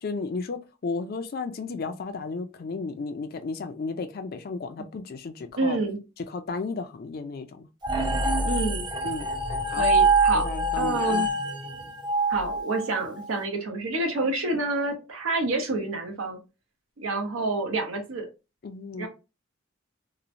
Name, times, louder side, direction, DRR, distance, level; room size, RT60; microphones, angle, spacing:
voice 1, 0.0-5.8 6.3-7.7 8.1-8.2 9.0-9.3 9.7-9.9 10.3-11.3 18.6-19.1, left 4 dB, 45° left, 0.4 m, -34 dB
voice 2, 5.6-6.0 8.4-8.9 9.7-10.5 10.8-11.3 12.3-16.4 17.0-18.3 19.0-19.1, right 2 dB, 85° right, 0.7 m, -28 dB
sound 1, 7.8-13.3, right 2 dB, 20° right, 0.5 m, -25 dB
2.9 x 2.1 x 2.5 m
head